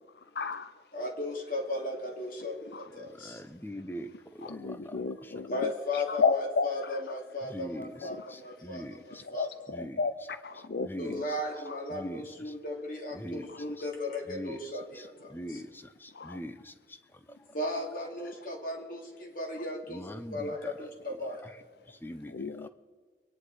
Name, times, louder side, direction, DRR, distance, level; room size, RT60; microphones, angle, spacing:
voice 1, 0.4-0.7 2.7-2.8 4.4-7.0 8.0-8.3 9.2-11.2 11.7-11.8 13.5-13.6 16.1-16.4 22.3-22.7, left 4 dB, 65° left, 13 dB, 0.5 m, -33 dB
voice 2, 0.9-3.4 5.5-9.5 11.0-15.6 17.3-21.5, left 1 dB, 50° left, 1 dB, 2.8 m, -36 dB
voice 3, 3.2-4.1 4.4-5.0 7.5-7.9 8.6-9.2 9.7-10.0 10.8-11.1 11.9-12.2 13.1-13.5 14.3-14.6 15.3-15.7 16.0-16.7 19.9-20.7 22.0-22.5, equal, 10° left, 10 dB, 0.7 m, -41 dB
23.5 x 10.5 x 4.9 m, 1.4 s
head